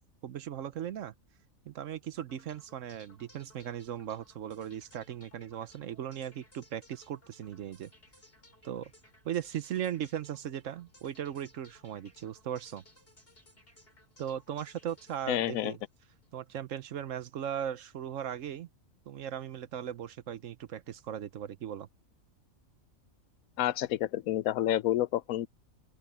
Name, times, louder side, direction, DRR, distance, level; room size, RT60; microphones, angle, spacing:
voice 1, 0.2-1.1 1.7-7.9 8.6-8.9 9.2-12.8 14.2-15.8 16.3-18.7 19.1-21.9, right 10 dB, 70° right, 1.1 m, -38 dB
sound 1, 2.3-16.4, left 1 dB, 45° left, 7.8 m, -61 dB
voice 2, 15.3-15.7 23.6-25.5, left 13 dB, 85° left, 1.0 m, -29 dB
open air
omnidirectional pair, 1.4 m